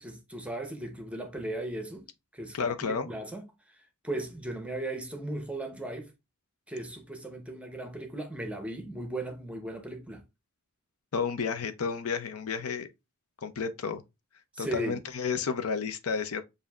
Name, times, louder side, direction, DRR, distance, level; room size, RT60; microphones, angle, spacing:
voice 1, 0.0-2.1 2.3-3.5 4.0-6.1 6.7-10.2 14.5-15.0, right 1 dB, 5° right, 0.7 m, -37 dB
voice 2, 2.5-3.1 11.1-12.9 13.4-14.0 14.6-16.4, left 5 dB, 70° left, 0.6 m, -31 dB
7.1 x 2.6 x 2.3 m
head